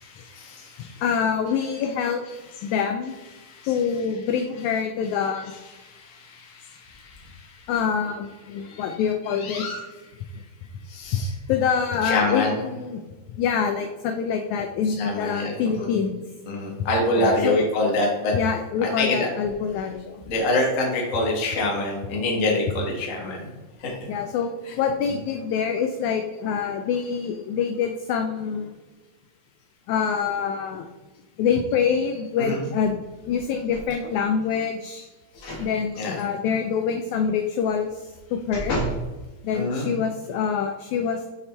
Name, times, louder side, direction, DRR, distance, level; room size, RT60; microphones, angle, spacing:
voice 1, 0.0-1.1 1.8-1.9 2.3-3.9 4.3-5.1 5.4-7.5 8.6-9.9 10.9-11.3 12.0-12.6 14.8-15.9 16.4-18.3 18.8-19.3 20.3-23.5 23.8-23.9 24.6-24.8 25.1-25.2 32.4-32.6 35.4-35.5 35.9-36.2 39.5-39.9, left 2 dB, 60° left, -1 dB, 0.8 m, -27 dB
voice 2, 0.8-2.2 2.6-3.2 3.7-5.5 7.7-9.7 11.5-13.0 13.4-16.2 17.2-17.6 18.3-20.2 24.1-28.7 29.9-30.8 31.4-35.1 35.6-37.9 38.3-38.8 39.4-41.2, left 7 dB, 90° left, 6 dB, 1.7 m, -25 dB
sound 1, 33.7-34.2 35.3-35.7 36.1-36.2 37.8-39.1 39.7-39.8, right 1 dB, 45° left, 1.8 m, -31 dB
6.4 x 5.5 x 3.4 m, 1.2 s
omnidirectional pair, 3.9 m